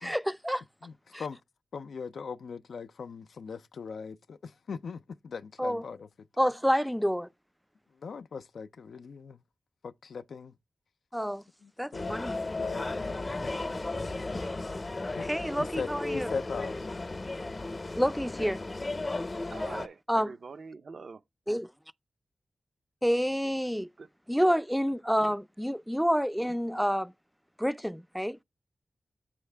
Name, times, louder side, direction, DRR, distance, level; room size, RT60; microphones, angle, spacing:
voice 1, 0.0-0.6 1.1-1.2 5.6-5.8 6.4-7.3 11.1-11.4 11.8-12.4 15.2-16.3 18.0-18.6 20.1-20.3 21.5-21.7 23.0-23.9 24.3-27.1 27.6-28.4, equal, ahead, 0.3 m, -28 dB
voice 2, 0.8-1.4 1.7-6.1 8.0-9.4 9.8-10.5 11.6-12.3 12.6-13.2 15.2-15.3 15.6-16.9 17.1-17.5, left 5 dB, 85° left, 0.4 m, -40 dB
sound 1, 11.9-19.9, left 2 dB, 40° left, 0.7 m, -35 dB
voice 3, 19.5-21.2 24.0-24.1 25.2-25.3, right 4 dB, 75° right, 0.5 m, -44 dB
7.2 x 5.6 x 3.3 m
cardioid pair, 50°, 0 cm